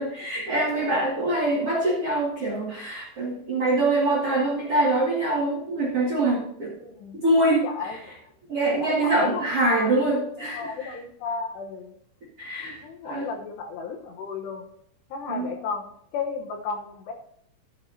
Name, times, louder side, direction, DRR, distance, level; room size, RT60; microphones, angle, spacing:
voice 1, 0.0-6.7 7.1-8.0 8.5-11.0 12.4-13.3 15.3-15.5, right 2 dB, 50° right, -3 dB, 1.8 m, -24 dB
voice 2, 6.8-7.2 7.5-8.0 8.8-9.5 9.8-9.9 10.5-11.9 12.8-14.7 15.1-15.8 16.1-17.1, left 5 dB, 70° left, 3 dB, 2.9 m, -33 dB
13.0 x 8.8 x 2.7 m, 0.69 s
omnidirectional pair, 5.5 m